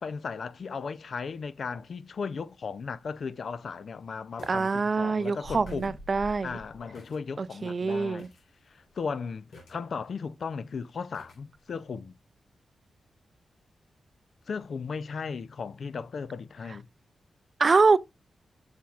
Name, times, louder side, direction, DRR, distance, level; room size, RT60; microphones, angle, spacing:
voice 1, 0.0-6.0 6.4-8.3 9.0-12.1 14.5-16.9, left 5 dB, 60° left, 0.5 m, -36 dB
sound 1, 4.4-4.7 5.0-5.1 5.4-7.2 7.6-7.7 8.2-8.4 8.7-9.0 9.5-10.1 11.1-11.4 11.8-11.9, left 1 dB, 85° left, 3.9 m, -47 dB
voice 2, 4.5-6.5 7.4-8.3 17.6-18.0, right 4 dB, 40° right, 0.4 m, -25 dB
7.4 x 7.2 x 2.4 m
wide cardioid pair, 115°, 0 cm